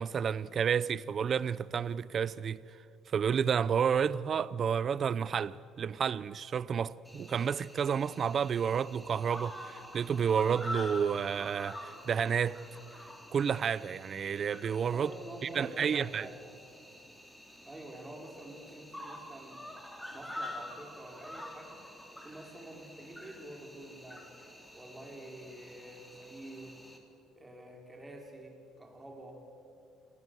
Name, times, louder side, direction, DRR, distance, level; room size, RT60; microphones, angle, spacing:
voice 1, 0.0-2.6 3.1-12.6 13.3-15.1 15.5-16.3, right 7 dB, 40° right, 0.6 m, -30 dB
Cricket, 7.1-27.0, left 1 dB, 5° left, 3.3 m, -47 dB
voice 2, 14.9-16.4 17.6-19.7 20.1-21.8 22.2-24.4 24.7-26.8 27.4-29.5, right 1 dB, 15° right, 5.2 m, -48 dB
28.0 x 19.0 x 8.0 m
cardioid pair, 115°, 0 cm